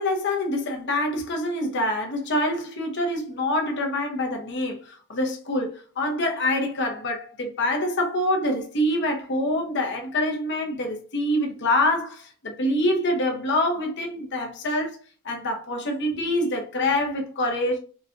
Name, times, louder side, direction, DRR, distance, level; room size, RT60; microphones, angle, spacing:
voice 1, 0.0-15.0 15.2-17.8, left 1 dB, 55° left, 0.8 m, -25 dB
4.1 x 2.2 x 2.5 m
head